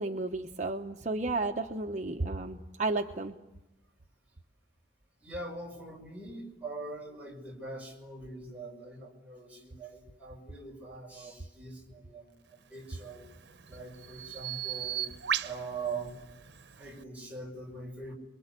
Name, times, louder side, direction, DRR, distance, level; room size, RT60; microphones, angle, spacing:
voice 1, 0.0-3.3, right 2 dB, 45° right, 3 dB, 1.0 m, -33 dB
voice 2, 5.2-13.2 13.7-15.0 15.4-16.2 16.8-18.1, right 3 dB, 10° right, -2 dB, 5.6 m, -42 dB
Bird vocalization bird call bird song, 12.8-17.0, right 9 dB, 85° right, 0.9 m, -38 dB
28.5 x 22.5 x 8.3 m, 0.93 s
head